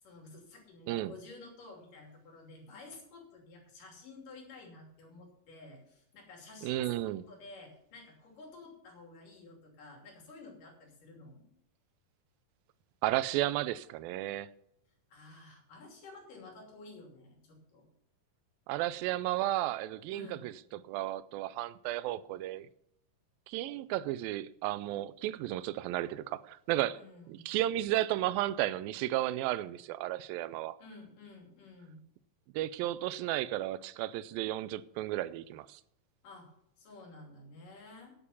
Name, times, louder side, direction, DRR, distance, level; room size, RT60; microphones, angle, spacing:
voice 1, 0.0-11.5 15.1-17.9 20.1-20.5 26.9-27.5 30.8-32.1 36.2-36.5 36.8-38.1, left 3 dB, 65° left, 4.5 m, -52 dB
voice 2, 6.6-7.2 13.0-14.5 18.7-22.7 23.5-27.0 27.3-30.8 32.5-35.8, right 15 dB, 90° right, 2.3 m, -33 dB
11.5 x 7.0 x 7.1 m
omnidirectional pair, 4.0 m